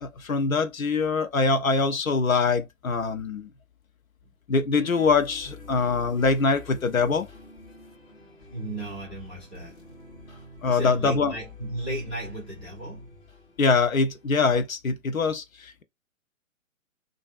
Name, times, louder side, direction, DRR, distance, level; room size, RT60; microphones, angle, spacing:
voice 1, 0.0-3.5 4.5-7.3 10.6-11.3 13.6-15.8, left 4 dB, 90° left, 0.6 m, -24 dB
sound 1, 4.7-14.4, left 3 dB, 45° left, 2.0 m, -48 dB
voice 2, 8.5-9.9 10.6-13.2, right 1 dB, 10° left, 0.4 m, -35 dB
3.2 x 2.5 x 2.3 m
figure-of-eight pair, 125°, 40 cm